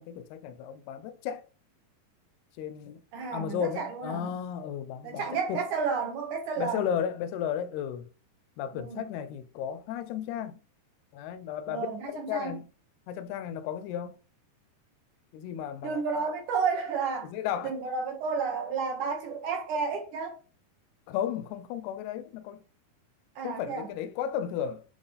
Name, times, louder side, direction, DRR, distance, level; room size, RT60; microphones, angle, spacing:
voice 1, 0.0-1.5 2.6-3.0 3.3-5.2 5.5-5.6 6.6-8.1 8.6-10.6 11.1-12.6 13.1-14.2 15.3-16.0 17.3-17.7 21.1-22.6 23.4-24.8, left 9 dB, 85° left, 2.5 m, -34 dB
voice 2, 3.1-4.4 5.0-6.8 8.7-9.1 11.7-12.6 15.8-17.3 17.6-20.4 23.4-23.9, right 5 dB, 65° right, 2.2 m, -31 dB
7.8 x 3.3 x 3.9 m
omnidirectional pair, 4.6 m